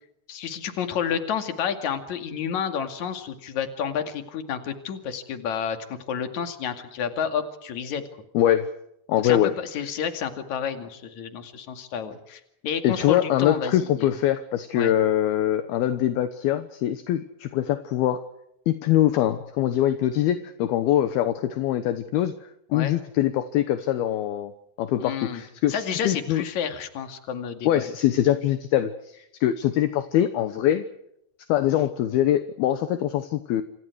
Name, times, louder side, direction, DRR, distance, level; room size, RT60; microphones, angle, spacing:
voice 1, 0.3-8.0 9.2-14.1 14.7-14.9 22.7-22.9 25.0-25.4 25.7-27.9, left 7 dB, 45° left, 7 dB, 3.0 m, -30 dB
voice 2, 8.3-8.7 9.1-9.5 12.8-18.2 18.7-24.5 24.8-26.4 27.7-30.8 31.5-33.6, left 12 dB, 70° left, 10 dB, 2.5 m, -23 dB
28.0 x 27.0 x 4.8 m, 0.79 s
omnidirectional pair, 5.5 m